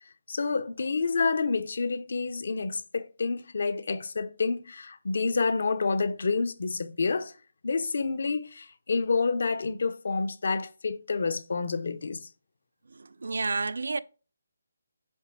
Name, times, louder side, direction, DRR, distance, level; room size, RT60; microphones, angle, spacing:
voice 1, 0.3-7.3 7.6-12.3, left 4 dB, 60° left, 0.7 m, -28 dB
voice 2, 13.0-14.0, right 3 dB, 80° right, 0.4 m, -30 dB
7.9 x 3.3 x 4.5 m
hypercardioid pair, 170°, 0 cm